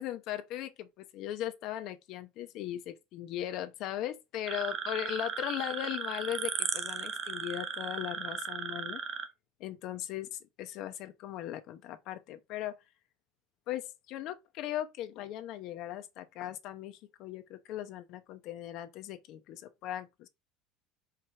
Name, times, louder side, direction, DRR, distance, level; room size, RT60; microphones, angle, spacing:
voice 1, 0.0-9.0 9.6-12.8 13.7-20.3, left 12 dB, 45° left, 0.8 m, -38 dB
sound 1, 4.5-9.3, right 6 dB, 25° right, 0.8 m, -36 dB
4.9 x 4.5 x 5.7 m
cardioid pair, 170°, 0 cm